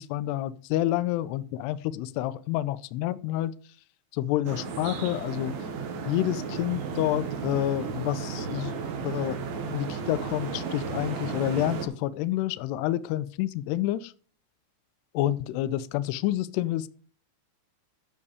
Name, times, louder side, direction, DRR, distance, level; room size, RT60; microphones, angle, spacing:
voice 1, 0.0-3.5 4.1-5.5 6.1-8.7 9.0-14.1 15.1-16.9, left 14 dB, 85° left, 13 dB, 2.4 m, -29 dB
sound 1, 4.5-11.9, right 5 dB, 90° right, 4.3 m, -34 dB
11.0 x 6.7 x 4.9 m, 0.41 s
omnidirectional pair, 5.4 m